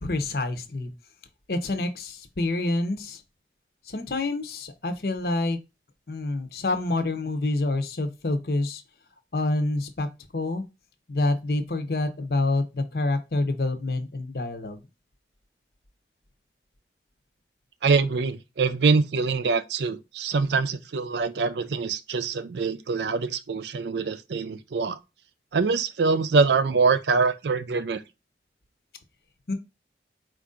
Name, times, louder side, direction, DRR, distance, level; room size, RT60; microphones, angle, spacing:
voice 1, 0.0-0.9 1.5-3.2 3.9-5.6 6.1-8.8 9.3-10.1 10.3-10.6 11.1-14.8 29.5-29.6, left 2 dB, 60° left, 0.7 m, -27 dB
voice 2, 17.8-25.0 25.5-28.0, right 4 dB, 75° right, 0.4 m, -24 dB
4.6 x 2.5 x 3.7 m
head